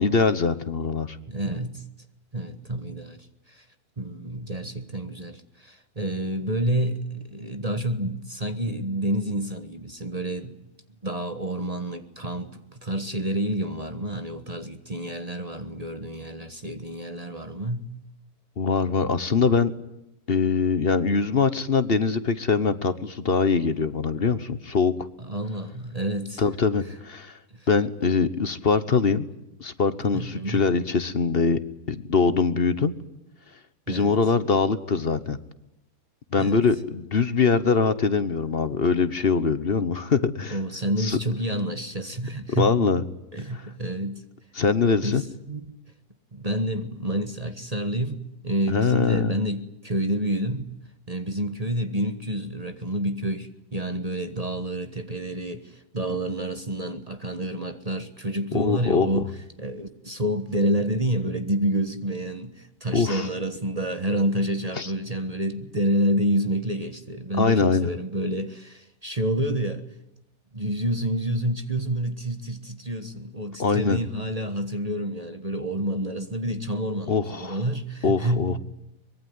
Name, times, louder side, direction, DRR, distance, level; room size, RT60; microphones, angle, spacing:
voice 1, 0.0-1.2 18.6-19.7 20.3-24.9 26.4-27.4 27.7-29.3 29.6-31.6 31.9-32.9 33.9-35.4 36.3-40.6 41.0-41.2 42.5-43.0 44.6-45.2 48.7-49.4 58.5-59.2 62.9-63.3 64.8-64.9 67.4-67.9 73.6-74.0 77.1-77.6 78.0-78.6, left 5 dB, 40° left, 1.2 m, -23 dB
voice 2, 1.3-1.8 2.3-3.7 4.0-10.6 11.0-17.9 25.2-26.4 26.8-26.9 27.5-27.7 30.1-30.6 33.9-34.1 36.4-36.6 40.5-42.8 43.3-44.2 45.0-45.6 46.3-50.7 51.1-59.3 59.6-69.9 70.5-78.6, right 1 dB, 25° right, 1.4 m, -29 dB
24.0 x 21.5 x 9.5 m
omnidirectional pair, 1.7 m